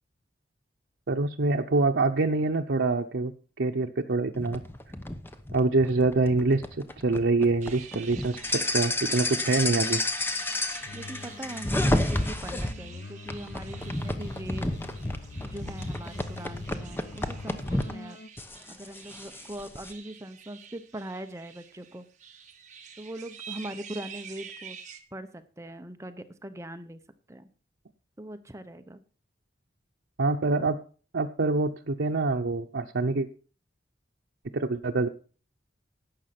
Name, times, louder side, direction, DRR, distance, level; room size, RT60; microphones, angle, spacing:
voice 1, 1.1-3.3 3.6-4.6 5.5-6.6 7.0-10.0 30.2-30.8 31.1-33.3 34.5-35.1, right 3 dB, 80° right, 3 dB, 0.8 m, -25 dB
sound 1, 4.3-12.7 13.3-17.9 18.4-19.9, left 1 dB, 10° left, 0.9 m, -31 dB
sound 2, 7.6-25.0, right 7 dB, 40° right, 1.4 m, -48 dB
sound 3, 10.9-18.3, left 4 dB, 70° left, 0.6 m, -45 dB
voice 2, 10.9-14.8 15.4-18.2 18.7-22.1 23.0-24.8 25.1-27.0 27.3-27.5 28.2-29.0, right 1 dB, 15° right, 9 dB, 0.8 m, -41 dB
11.5 x 8.0 x 5.9 m, 0.39 s
head